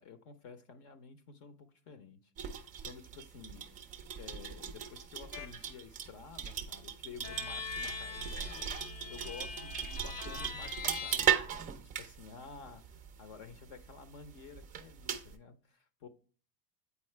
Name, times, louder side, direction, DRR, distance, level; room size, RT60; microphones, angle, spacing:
voice 1, 0.0-3.9 4.1-16.1, left 5 dB, 50° left, 0.8 m, -52 dB
sound 1, 2.4-15.4, right 8 dB, 20° right, 0.4 m, -38 dB
sound 2, 5.3-5.6 7.2-11.1, left 3 dB, 80° left, 1.4 m, -42 dB
8.3 x 4.2 x 3.2 m
supercardioid pair, 120°, 50 cm